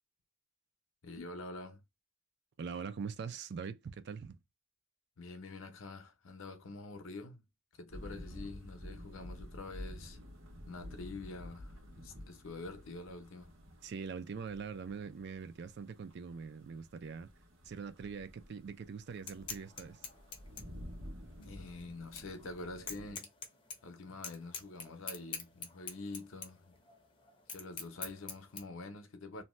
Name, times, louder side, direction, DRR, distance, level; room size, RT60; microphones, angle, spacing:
voice 1, 1.0-1.8 5.2-7.4 7.8-10.2 10.6-13.5 21.4-23.3 23.8-26.8 27.5-29.4, left 3 dB, 65° left, 0.6 m, -46 dB
voice 2, 2.6-4.4 13.8-17.3 17.6-20.0, right 5 dB, 50° right, 0.4 m, -43 dB
sound 1, 7.9-23.1, left 1 dB, 80° right, 1.0 m, -51 dB
sound 2, 19.1-28.6, left 5 dB, 25° left, 0.6 m, -46 dB
2.6 x 2.2 x 3.0 m
head